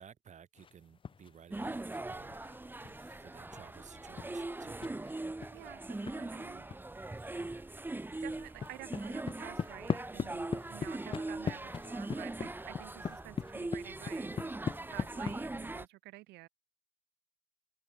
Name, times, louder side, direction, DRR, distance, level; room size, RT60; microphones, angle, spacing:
voice 1, 0.0-1.8 2.0-2.4 2.8-4.9, right 8 dB, 45° right, 6.6 m, -55 dB
sound 1, 0.6-1.4 1.6-6.2 6.7-6.8 7.1-7.6 7.9-15.4, left 6 dB, 30° left, 0.9 m, -41 dB
sound 2, 1.5-15.9, right 2 dB, 10° right, 5.1 m, -41 dB
voice 2, 5.5-6.7 8.2-14.6 14.9-16.5, right 19 dB, 85° right, 4.5 m, -50 dB
open air
cardioid pair, 110°, 17 cm